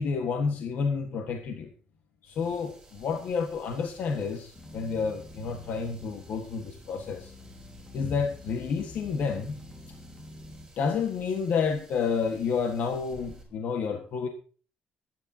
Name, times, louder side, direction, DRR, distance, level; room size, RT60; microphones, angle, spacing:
voice 1, 0.0-1.7 2.2-7.3 7.9-9.6 10.8-14.3, left 5 dB, 60° left, 5 dB, 1.5 m, -30 dB
sound 1, 2.2-13.4, right 2 dB, 15° right, 6.1 m, -55 dB
sound 2, 4.5-10.7, left 2 dB, 30° left, 1.9 m, -48 dB
24.5 x 10.5 x 2.8 m, 0.38 s
cardioid pair, 145°, 3 cm